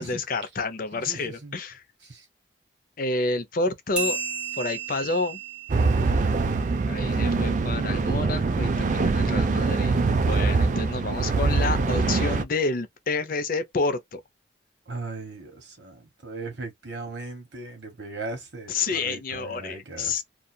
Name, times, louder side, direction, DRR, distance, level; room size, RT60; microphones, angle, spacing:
voice 1, 0.0-1.8 3.0-4.2 4.5-5.4 6.9-14.2 18.7-20.2, left 3 dB, 50° left, 0.6 m, -29 dB
voice 2, 0.9-1.5 2.0-2.2 14.9-20.2, right 3 dB, 65° right, 1.2 m, -38 dB
sound 1, 4.0-7.0, right 5 dB, 5° right, 1.2 m, -34 dB
sound 2, 5.7-12.4, right 3 dB, 40° right, 0.4 m, -23 dB
2.7 x 2.4 x 2.2 m
head